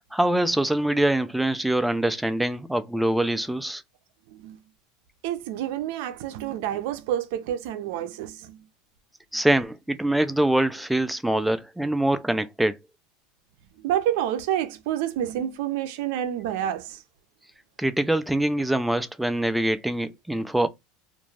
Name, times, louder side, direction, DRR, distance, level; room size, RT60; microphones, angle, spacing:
voice 1, 0.1-3.8 9.3-12.7 17.8-20.7, right 1 dB, 5° right, 0.3 m, -24 dB
voice 2, 5.2-8.6 13.8-17.0, right 11 dB, 70° right, 0.5 m, -28 dB
2.5 x 2.3 x 3.1 m
supercardioid pair, 145°, 0 cm